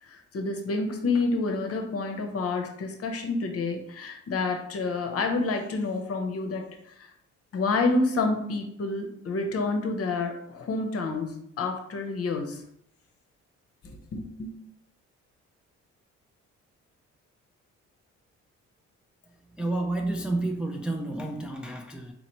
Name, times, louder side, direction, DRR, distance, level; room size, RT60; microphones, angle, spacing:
voice 1, 0.0-7.1 7.5-12.6 13.8-14.5, left 3 dB, 50° left, 5 dB, 0.8 m, -29 dB
voice 2, 19.6-22.1, right 2 dB, 5° right, 2 dB, 0.4 m, -30 dB
4.0 x 2.9 x 3.0 m, 0.72 s
cardioid pair, 90°, 30 cm